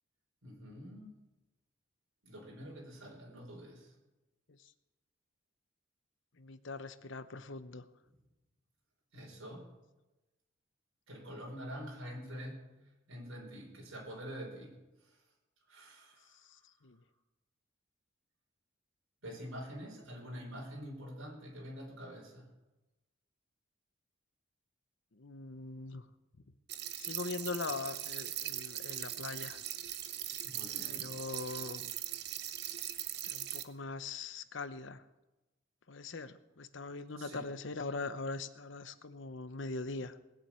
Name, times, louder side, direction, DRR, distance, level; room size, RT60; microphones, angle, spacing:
voice 1, 0.4-1.1 2.2-4.0 9.1-9.7 11.1-12.8 13.1-15.2 15.7-16.4 19.2-22.5 30.4-31.2 37.2-37.5, equal, 80° right, -2 dB, 4.7 m, -46 dB
voice 2, 6.4-7.9 16.4-17.0 25.1-26.1 27.0-29.6 30.9-31.9 33.2-35.0 35.9-40.2, left 3 dB, 65° left, 12 dB, 0.9 m, -42 dB
sound 1, 26.7-33.6, right 12 dB, 50° right, 0.9 m, -40 dB
19.5 x 7.4 x 8.8 m, 1.0 s
head